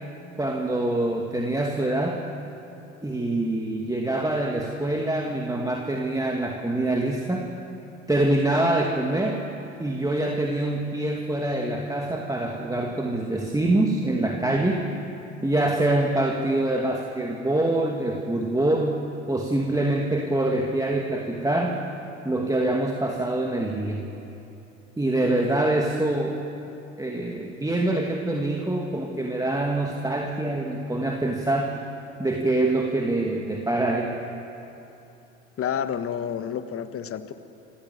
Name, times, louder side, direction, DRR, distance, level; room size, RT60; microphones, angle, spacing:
voice 1, 0.4-2.2 3.0-7.5 8.1-9.4 9.8-14.9 15.4-19.0 19.3-21.8 22.2-24.0 25.0-26.4 27.0-31.8 32.2-34.1, right 1 dB, 10° right, 1 dB, 2.2 m, -25 dB
voice 2, 35.6-37.3, left 8 dB, 35° left, 10 dB, 1.5 m, -29 dB
27.0 x 16.0 x 7.6 m, 2.9 s
figure-of-eight pair, 65°, 38 cm